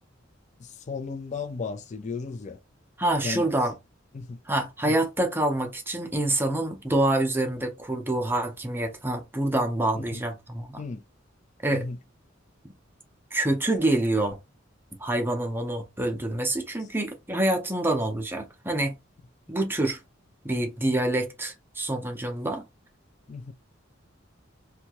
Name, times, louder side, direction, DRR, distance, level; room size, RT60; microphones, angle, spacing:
voice 1, 0.6-2.6 3.2-3.5 4.1-4.4 4.8-4.9 9.9-10.2 10.8-11.0 11.7-12.0 23.3-23.5, left 4 dB, 35° left, 0.4 m, -35 dB
voice 2, 3.0-3.7 4.5-10.8 11.6-11.8 12.6-12.7 13.3-14.4 15.0-18.9 19.5-20.0 20.4-22.6, right 1 dB, 10° right, 0.6 m, -26 dB
2.8 x 2.3 x 2.8 m
head